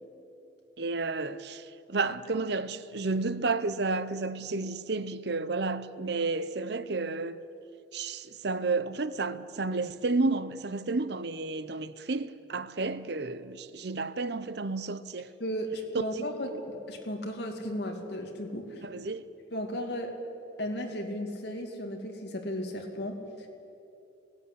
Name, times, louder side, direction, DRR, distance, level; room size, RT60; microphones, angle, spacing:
voice 1, 0.8-7.4 7.9-15.3 16.0-16.3 18.8-19.3, right 3 dB, 60° right, 0.7 m, -31 dB
voice 2, 15.4-18.8 19.5-20.2 20.6-23.5, equal, 60° left, 2.6 m, -35 dB
18.0 x 16.5 x 10.0 m
head